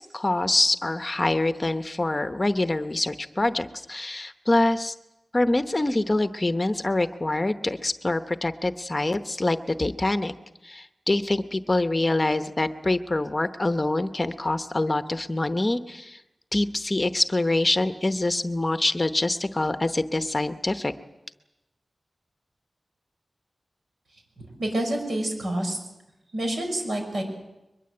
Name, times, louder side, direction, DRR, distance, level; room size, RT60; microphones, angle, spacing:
voice 1, 0.0-4.9 5.3-10.3 10.6-16.2 16.5-20.9, left 2 dB, 25° left, 9 dB, 0.9 m, -25 dB
voice 2, 24.6-25.8 26.3-27.2, right 1 dB, 70° right, 3 dB, 6.1 m, -27 dB
22.5 x 21.5 x 7.8 m, 0.96 s
wide cardioid pair, 105°, 0 cm